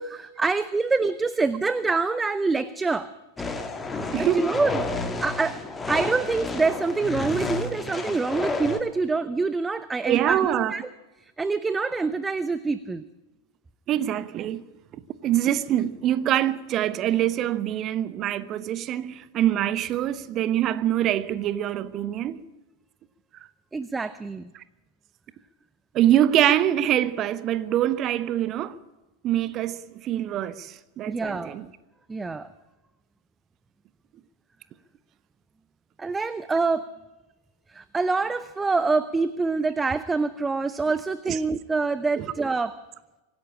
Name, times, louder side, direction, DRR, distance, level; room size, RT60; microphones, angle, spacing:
voice 1, 0.0-3.1 4.2-4.9 5.2-5.6 5.9-10.9 11.2-13.0 23.7-24.5 31.1-31.6 32.1-32.5 36.0-36.9 37.7-42.8, right 4 dB, 10° right, 0.7 m, -26 dB
sound 1, 3.4-8.8, left 3 dB, 15° left, 2.0 m, -30 dB
voice 2, 4.1-4.4 10.1-10.7 13.9-14.6 15.2-22.4 25.9-28.8 29.2-31.7 41.3-41.4 42.2-42.3, right 11 dB, 35° right, 1.0 m, -24 dB
24.5 x 10.5 x 10.0 m
figure-of-eight pair, 90°, 0 cm